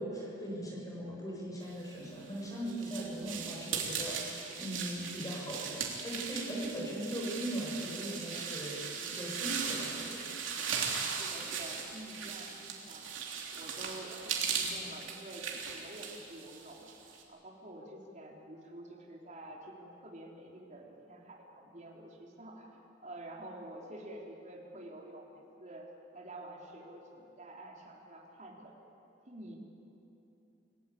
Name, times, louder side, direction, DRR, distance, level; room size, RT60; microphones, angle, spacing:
voice 1, 0.0-10.2, right 1 dB, 20° left, -4 dB, 7.2 m, -39 dB
sound 1, 2.1-17.2, right 6 dB, 75° right, 3.5 m, -38 dB
voice 2, 10.6-13.1 13.5-16.9 17.3-28.7 29.3-29.6, right 1 dB, 40° right, -1 dB, 3.6 m, -49 dB
29.0 x 17.0 x 8.6 m, 2.9 s
head